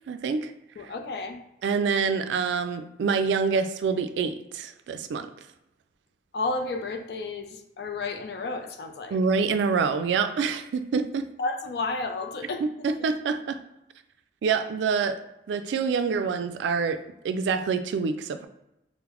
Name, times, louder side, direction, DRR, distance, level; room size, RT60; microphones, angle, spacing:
voice 1, 0.1-0.5 1.6-5.3 9.1-11.2 12.8-13.6 14.4-15.2 15.5-18.5, right 5 dB, 90° right, 9 dB, 0.3 m, -26 dB
voice 2, 0.8-1.4 6.3-9.2 11.4-12.6, left 3 dB, 65° left, 5 dB, 0.4 m, -32 dB
3.7 x 2.1 x 2.9 m, 0.88 s
head